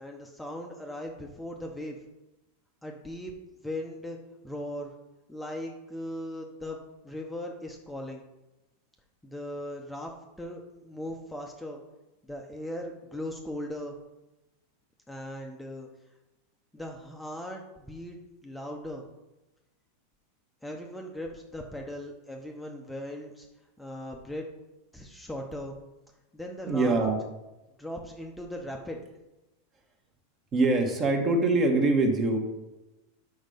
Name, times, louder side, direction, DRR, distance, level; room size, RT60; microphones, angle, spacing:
voice 1, 0.0-2.0 2.8-3.3 3.6-4.2 4.4-4.9 5.3-8.2 9.2-11.8 12.2-13.9 15.1-15.9 16.7-18.2 18.4-19.1 20.6-23.5 23.8-24.4 24.9-25.8 26.3-26.9 27.8-29.0, left 1 dB, 5° left, 0 dB, 0.8 m, -38 dB
voice 2, 26.7-27.2 30.5-32.4, right 2 dB, 30° right, 4 dB, 1.3 m, -23 dB
6.3 x 5.2 x 5.1 m, 1.0 s
supercardioid pair, 130°, 0 cm